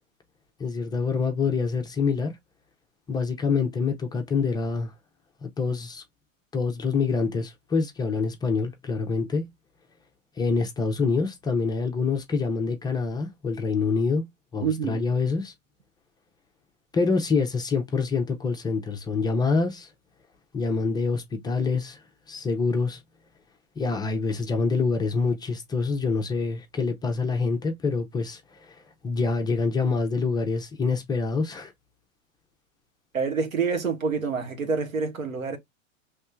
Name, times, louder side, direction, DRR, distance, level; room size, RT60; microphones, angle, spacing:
voice 1, 0.6-2.4 3.1-4.9 5.4-6.0 6.5-9.5 10.4-14.2 14.5-15.5 16.9-19.9 20.5-22.0 22.3-23.0 23.8-31.7, left 4 dB, 10° left, 0.5 m, -26 dB
voice 2, 14.6-15.0 33.1-35.6, right 5 dB, 85° right, 1.3 m, -27 dB
5.3 x 3.1 x 2.2 m
figure-of-eight pair, 105°, 40 cm